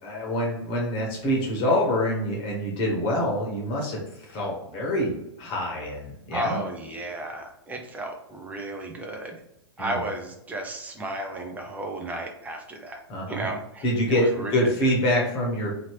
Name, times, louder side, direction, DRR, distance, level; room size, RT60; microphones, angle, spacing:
voice 1, 0.0-4.0 4.3-6.6 9.8-10.0 13.1-13.5 13.8-15.8, equal, 40° left, -2 dB, 1.1 m, -26 dB
voice 2, 6.3-9.4 9.8-13.0 13.3-14.6, right 1 dB, 10° right, 2 dB, 0.6 m, -33 dB
2.8 x 2.7 x 3.1 m, 0.83 s
figure-of-eight pair, 105°, 14 cm